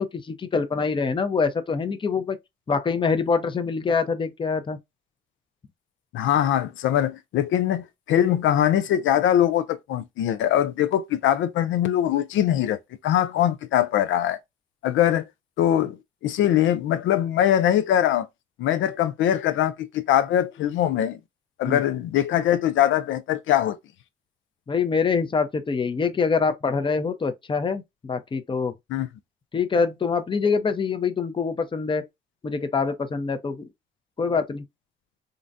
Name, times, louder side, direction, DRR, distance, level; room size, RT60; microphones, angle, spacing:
voice 1, 0.0-2.4 2.7-4.8 21.6-21.8 24.7-28.7 29.5-32.0 32.4-33.7 34.2-34.6, left 5 dB, 25° left, 0.6 m, -25 dB
voice 2, 6.1-14.4 14.8-15.3 15.6-16.0 16.2-18.3 18.6-21.2 21.6-23.8 28.9-29.1, left 11 dB, 80° left, 0.4 m, -22 dB
3.8 x 2.2 x 2.5 m
cardioid pair, 90°, 20 cm